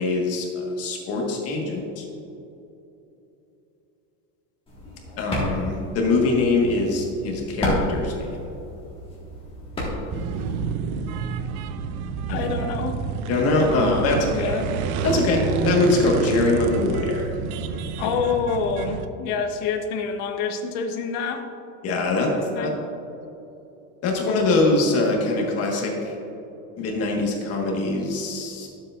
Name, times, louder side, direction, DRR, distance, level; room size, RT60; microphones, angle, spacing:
voice 1, 0.0-2.0 5.2-8.4 12.3-12.4 13.3-14.5 15.0-15.4 15.6-17.4 21.8-22.3 22.6-22.7 24.0-26.1 26.8-28.7, left 2 dB, 35° left, -1 dB, 1.5 m, -23 dB
sound 1, 4.7-10.6, left 1 dB, 15° left, 1.7 m, -31 dB
sound 2, 10.1-19.1, right 6 dB, 85° right, 0.7 m, -29 dB
voice 2, 12.3-13.0 13.8-13.9 14.3-14.7 18.0-21.4 22.5-22.7, left 5 dB, 70° left, 5 dB, 1.1 m, -27 dB
12.0 x 7.6 x 2.5 m, 2.9 s
cardioid pair, 170°, 42 cm